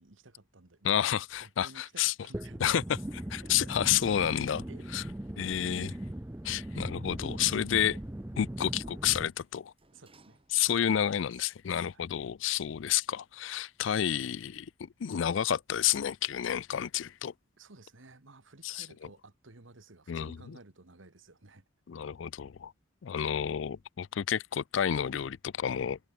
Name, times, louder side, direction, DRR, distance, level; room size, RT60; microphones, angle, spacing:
voice 1, 0.0-3.0 3.4-3.5 4.3-6.0 9.9-10.4 10.7-10.8 11.4-11.5 11.9-12.0 17.6-21.6, right 2 dB, 75° right, 1.7 m, -55 dB
voice 2, 0.8-2.1 2.6-2.8 3.3-4.6 4.9-5.0 5.4-5.9 6.4-8.0 8.4-9.7 10.5-17.3 18.6-18.8 20.1-20.4 21.9-22.7 23.0-26.0, left 9 dB, 70° left, 0.4 m, -30 dB
sound 1, 2.3-9.3, right 1 dB, 10° right, 0.5 m, -39 dB
Sliding door, 7.0-11.0 11.5-11.6, right 2 dB, 30° right, 5.6 m, -67 dB
head